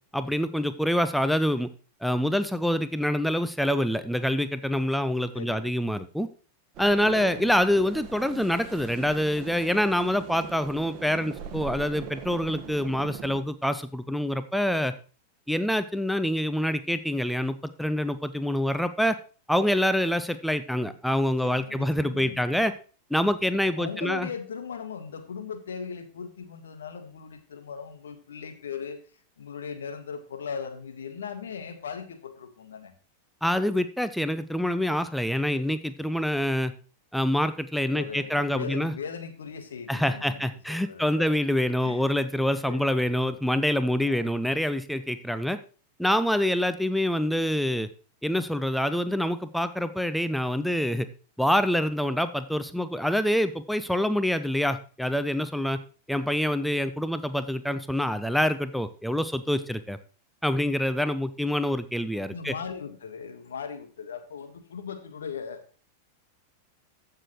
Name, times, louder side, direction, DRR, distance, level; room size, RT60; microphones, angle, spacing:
voice 1, 0.1-1.7 2.0-6.3 6.8-14.9 15.5-19.2 19.5-22.7 23.1-24.3 33.4-36.7 37.1-38.9 39.9-45.6 46.0-47.9 48.2-51.1 51.4-55.8 56.1-60.0 60.4-62.5, equal, ahead, 12 dB, 0.5 m, -26 dB
voice 2, 5.3-5.7 7.0-7.5 21.2-22.4 23.8-29.0 29.4-32.9 37.9-40.4 40.7-41.3 41.8-42.0 42.4-43.0 44.0-44.3 62.3-65.6, left 6 dB, 65° left, 7 dB, 1.5 m, -38 dB
sound 1, 6.7-13.4, right 6 dB, 35° right, 1.4 m, -41 dB
15.0 x 6.7 x 3.1 m, 0.38 s
figure-of-eight pair, 90°, 0 cm